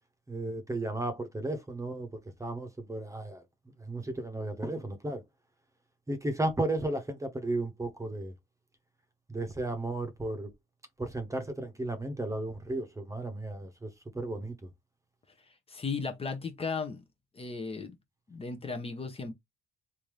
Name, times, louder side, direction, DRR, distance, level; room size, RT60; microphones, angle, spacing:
voice 1, 0.3-3.4 3.8-5.2 6.1-8.3 9.3-10.5 11.0-14.5, right 2 dB, 15° right, 1.0 m, -34 dB
voice 2, 15.7-17.0 17.3-17.9 18.3-19.3, left 4 dB, 30° left, 0.9 m, -35 dB
3.5 x 2.7 x 3.2 m
cardioid pair, 90°, 20 cm